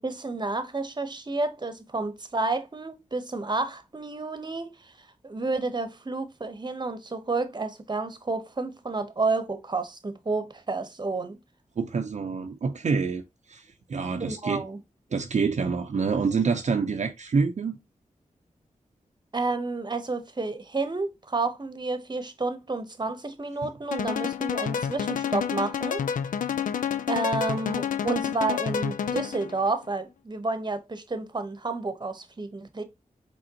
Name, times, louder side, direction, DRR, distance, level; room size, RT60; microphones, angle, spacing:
voice 1, 0.0-4.9 5.2-11.4 14.2-14.8 19.3-26.0 27.1-32.8, right 3 dB, 35° right, 0.9 m, -30 dB
voice 2, 11.8-14.6 15.1-17.8, right 5 dB, 60° right, 0.6 m, -27 dB
sound 1, 23.9-29.5, left 8 dB, 80° left, 0.4 m, -29 dB
5.0 x 3.5 x 2.8 m
cardioid pair, 50°, 13 cm